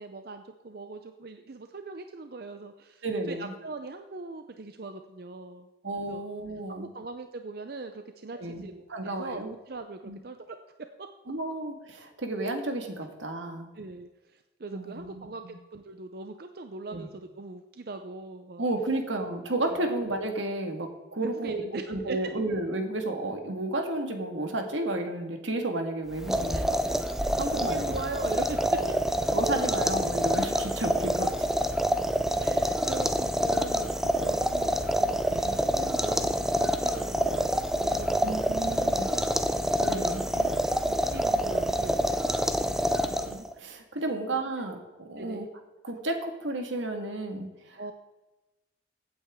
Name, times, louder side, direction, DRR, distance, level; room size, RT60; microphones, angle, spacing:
voice 1, 0.0-5.7 6.0-6.2 6.7-10.6 11.0-11.1 13.8-18.6 19.6-19.8 21.2-22.2 26.5-26.6 27.2-28.7 32.4-39.3 39.9-42.3 42.7-42.8 44.1-44.2 45.2-45.5 47.8-47.9, right 3 dB, 55° right, 7 dB, 0.6 m, -41 dB
voice 2, 3.0-3.5 5.8-6.9 8.3-9.5 10.0-10.2 11.3-13.7 14.7-15.6 16.9-17.1 18.6-21.6 21.9-26.8 27.4-28.0 28.7-29.0 29.3-31.5 35.3-35.6 38.2-39.1 39.8-40.3 43.0-45.5 45.8-47.9, right 2 dB, 85° right, 4 dB, 1.8 m, -32 dB
sound 1, 26.1-43.5, equal, ahead, 0.5 m, -27 dB
15.5 x 8.8 x 3.6 m, 1.1 s
head